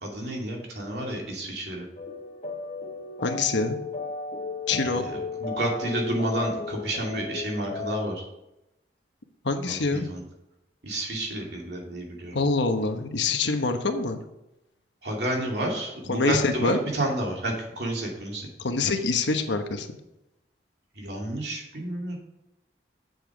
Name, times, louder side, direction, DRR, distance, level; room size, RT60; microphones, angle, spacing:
voice 1, 0.0-1.9 4.8-8.2 9.7-10.2 10.8-12.4 15.0-18.5 21.0-22.2, right 1 dB, 65° right, -1 dB, 2.6 m, -30 dB
sound 1, 2.0-8.0, left 3 dB, 40° left, 1.1 m, -35 dB
voice 2, 3.2-3.8 4.7-5.0 9.4-10.1 12.3-14.2 16.1-16.8 18.6-19.9, left 3 dB, 90° left, 6 dB, 1.1 m, -25 dB
7.9 x 7.2 x 5.1 m, 0.90 s
head